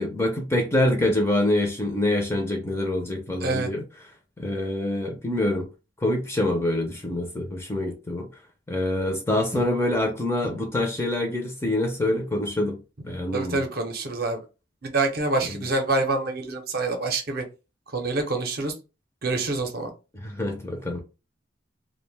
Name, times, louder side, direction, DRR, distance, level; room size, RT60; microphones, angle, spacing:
voice 1, 0.0-3.8 4.4-5.7 6.0-8.3 8.7-12.8 13.1-13.6 15.4-15.7 20.1-21.0, left 1 dB, 15° left, 0.5 m, -25 dB
voice 2, 13.3-14.4 14.8-17.4 17.9-18.7 19.2-19.9, right 3 dB, 50° right, 0.6 m, -26 dB
2.5 x 2.1 x 3.2 m
head